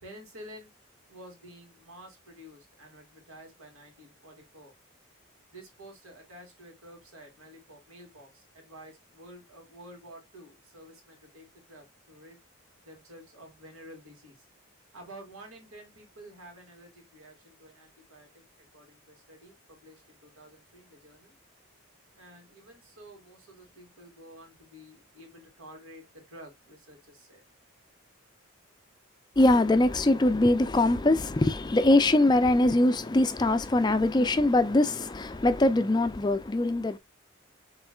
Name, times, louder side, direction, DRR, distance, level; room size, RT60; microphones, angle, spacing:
voice 1, 0.0-0.7 1.1-4.7 5.5-12.4 12.8-14.4 14.9-21.3 22.2-27.4, right 1 dB, 85° right, 2.5 m, -50 dB
voice 2, 29.4-37.0, left 2 dB, 20° left, 0.3 m, -22 dB
7.0 x 3.1 x 2.2 m
head